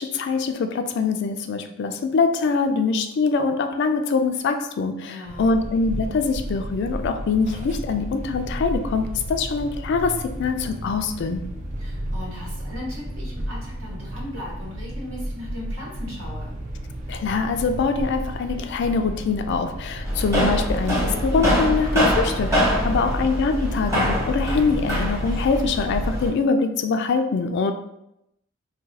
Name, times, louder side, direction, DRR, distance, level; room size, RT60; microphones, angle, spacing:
voice 1, 0.0-11.4 17.1-27.7, left 4 dB, 55° left, 7 dB, 0.3 m, -24 dB
voice 2, 5.0-5.5 11.8-16.5 22.7-23.2, left 1 dB, 80° right, -5 dB, 1.3 m, -37 dB
sound 1, 5.3-23.3, equal, 35° right, 0.4 m, -33 dB
sound 2, 20.0-26.3, equal, 15° right, 0.9 m, -23 dB
2.4 x 2.3 x 4.0 m, 0.82 s
head